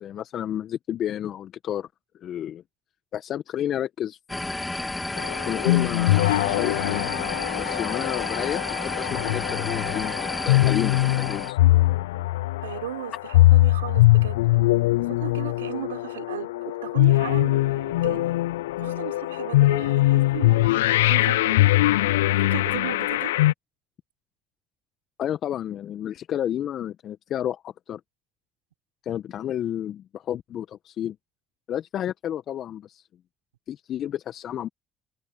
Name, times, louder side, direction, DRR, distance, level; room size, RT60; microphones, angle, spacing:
voice 1, 0.0-1.9 2.2-2.6 3.1-4.2 5.5-7.1 7.6-11.6 25.2-28.0 29.0-31.2 31.7-33.0 33.7-34.7, left 11 dB, 60° left, 1.3 m, -31 dB
sound 1, 4.3-11.5, left 2 dB, 15° left, 3.5 m, -31 dB
sound 2, 5.2-23.5, left 17 dB, 85° left, 0.4 m, -22 dB
voice 2, 12.6-14.5 15.1-18.4 18.8-23.3, right 12 dB, 85° right, 6.1 m, -36 dB
hypercardioid pair, 50°, 0 cm